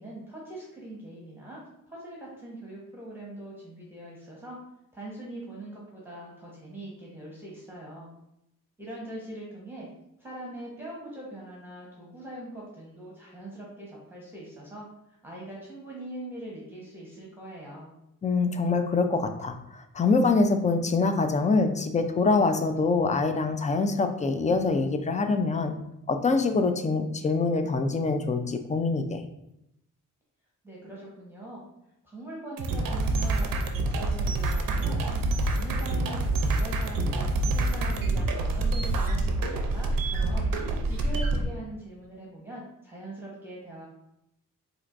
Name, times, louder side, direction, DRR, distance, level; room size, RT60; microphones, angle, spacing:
voice 1, 0.0-1.6 1.9-4.6 4.9-8.1 8.8-9.9 10.2-17.9 30.6-31.6 32.0-35.0 35.4-40.5 40.9-43.9, right 1 dB, 5° right, -5 dB, 1.1 m, -42 dB
voice 2, 18.2-25.7 26.1-29.2, left 3 dB, 20° left, 7 dB, 0.4 m, -25 dB
sound 1, 32.6-41.4, right 2 dB, 75° right, 0.5 m, -27 dB
4.2 x 2.5 x 2.5 m, 0.82 s
cardioid pair, 70°, 34 cm